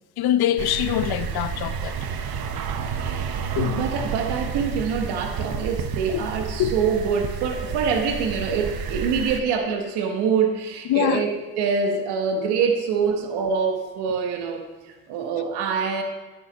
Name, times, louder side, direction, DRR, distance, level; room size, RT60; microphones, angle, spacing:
voice 1, 0.2-1.9 3.6-3.8 6.1-6.2 6.6-6.7 10.9-11.2, left 12 dB, 75° left, 0.7 m, -23 dB
sound 1, 0.6-9.4, right 7 dB, 65° right, 0.9 m, -30 dB
voice 2, 3.0-16.0, right 6 dB, 90° right, 1.2 m, -25 dB
9.8 x 8.1 x 5.2 m
supercardioid pair, 65°, 38 cm